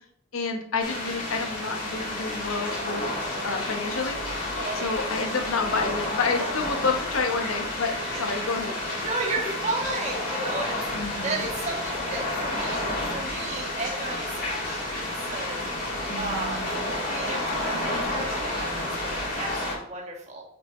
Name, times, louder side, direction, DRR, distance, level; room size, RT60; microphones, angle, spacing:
voice 1, 0.3-3.0 3.4-4.2 4.7-8.8 10.9-11.5 16.1-16.8, left 4 dB, 90° left, 4 dB, 1.0 m, -29 dB
sound 1, 0.8-19.7, left 1 dB, 40° left, 2.1 m, -30 dB
voice 2, 4.6-4.9 8.0-8.2 9.0-15.6 16.2-16.7 17.1-20.4, right 3 dB, 35° right, -2 dB, 1.8 m, -34 dB
8.1 x 6.2 x 3.1 m, 0.68 s
head